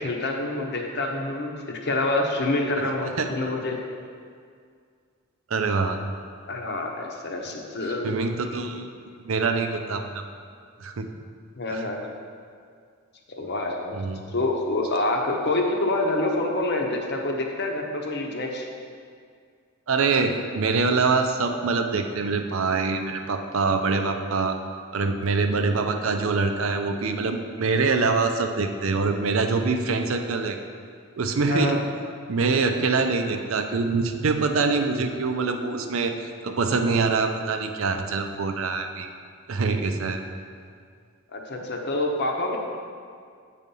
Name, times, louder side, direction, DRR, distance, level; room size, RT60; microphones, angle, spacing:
voice 1, 0.0-3.8 6.5-8.1 11.6-12.0 13.4-13.9 14.3-18.6 31.5-31.8 41.3-42.6, left 2 dB, 50° left, 1 dB, 0.9 m, -27 dB
voice 2, 5.5-6.0 8.0-8.9 9.2-10.2 10.8-11.1 11.7-11.9 13.9-14.2 19.9-24.6 24.9-30.6 31.2-31.8 32.3-39.1 39.5-40.2, right 4 dB, 70° right, 6 dB, 0.5 m, -24 dB
8.2 x 4.2 x 5.4 m, 2.2 s
head